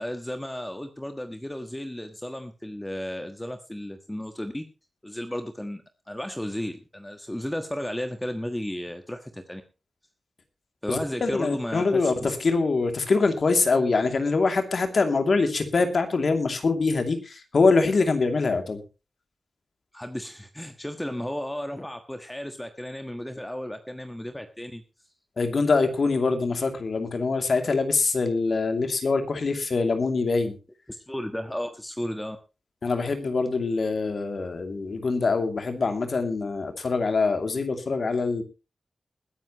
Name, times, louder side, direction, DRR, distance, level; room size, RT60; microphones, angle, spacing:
voice 1, 0.0-4.7 5.0-5.8 6.1-9.6 10.8-12.3 19.9-24.8 30.9-32.4, left 1 dB, 10° left, 7 dB, 1.4 m, -34 dB
voice 2, 10.9-18.8 25.4-30.6 32.8-38.4, left 4 dB, 60° left, 6 dB, 2.7 m, -24 dB
20.5 x 10.5 x 3.1 m, 0.29 s
wide cardioid pair, 75°, 0 cm